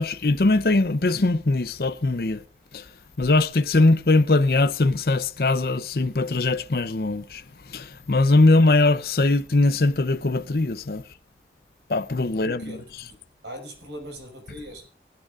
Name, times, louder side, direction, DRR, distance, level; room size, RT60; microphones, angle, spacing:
voice 1, 0.0-2.4 2.7-2.9 3.2-7.4 7.7-11.0 11.9-12.8, left 2 dB, 55° left, 0.7 m, -21 dB
voice 2, 12.3-14.8, equal, 85° right, 5.7 m, -40 dB
23.5 x 9.0 x 2.5 m
head